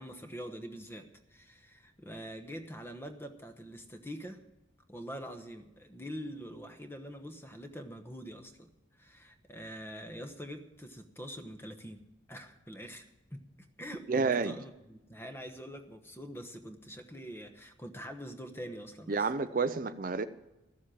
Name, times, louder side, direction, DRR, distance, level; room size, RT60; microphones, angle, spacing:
voice 1, 0.0-4.4 4.9-8.7 9.0-13.5 13.8-19.3, equal, 10° left, 6 dB, 1.0 m, -45 dB
voice 2, 14.1-14.6 19.1-20.3, right 4 dB, 45° right, 11 dB, 0.5 m, -29 dB
14.0 x 7.4 x 8.8 m, 0.96 s
head